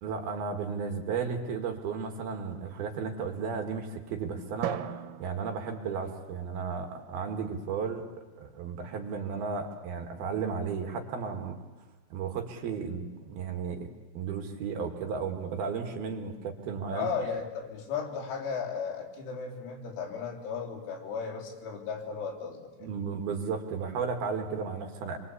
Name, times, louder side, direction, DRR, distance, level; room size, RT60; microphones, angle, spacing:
voice 1, 0.0-8.0 8.4-11.6 12.1-13.9 14.1-17.1 22.8-25.2, right 5 dB, 60° right, 5 dB, 3.2 m, -34 dB
Drum, 4.6-6.9, right 11 dB, 80° right, 3.7 m, -39 dB
voice 2, 16.9-22.9, left 6 dB, 90° left, 1 dB, 6.1 m, -35 dB
26.5 x 23.0 x 8.5 m, 1.3 s
omnidirectional pair, 6.0 m